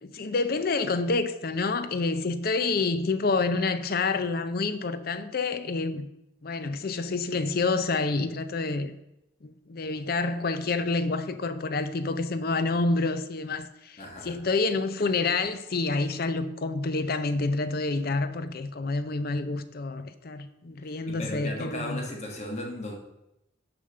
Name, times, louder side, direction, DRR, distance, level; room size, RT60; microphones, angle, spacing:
voice 1, 0.0-6.1 6.4-8.9 9.4-22.0, left 3 dB, 50° left, 0.6 m, -28 dB
voice 2, 14.0-14.4 21.0-23.0, left 1 dB, 35° left, 1.8 m, -35 dB
6.8 x 5.3 x 6.5 m
head